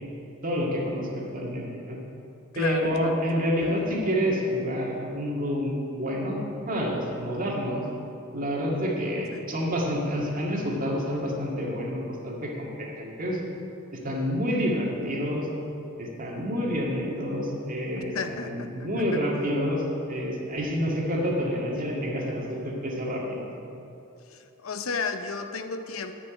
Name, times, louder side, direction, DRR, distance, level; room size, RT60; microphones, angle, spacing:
voice 1, 0.4-2.0 2.6-6.4 6.7-7.8 8.3-13.4 13.9-15.5 16.0-18.1 18.4-23.5, equal, 40° right, -2 dB, 2.0 m, -28 dB
voice 2, 2.5-3.5 9.3-9.5 17.9-19.2 24.3-26.1, left 4 dB, 70° left, 8 dB, 0.7 m, -34 dB
10.5 x 6.1 x 9.0 m, 2.8 s
head